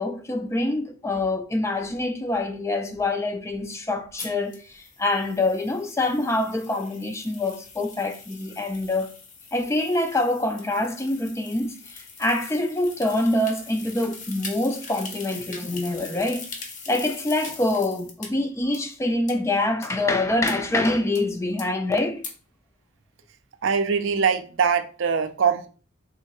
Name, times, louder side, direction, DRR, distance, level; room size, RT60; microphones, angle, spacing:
voice 1, 0.0-9.1 9.5-16.5 16.9-22.2, left 2 dB, 15° left, 0.4 m, -25 dB
sound 1, 4.2-18.3 18.7-18.8 19.3-19.4 19.8-19.9 20.5-20.6 21.2-21.3 21.6-21.7 22.2-22.3, left 4 dB, 40° left, 0.8 m, -41 dB
voice 2, 23.6-25.7, right 6 dB, 70° right, 0.5 m, -22 dB
3.6 x 3.3 x 3.0 m
head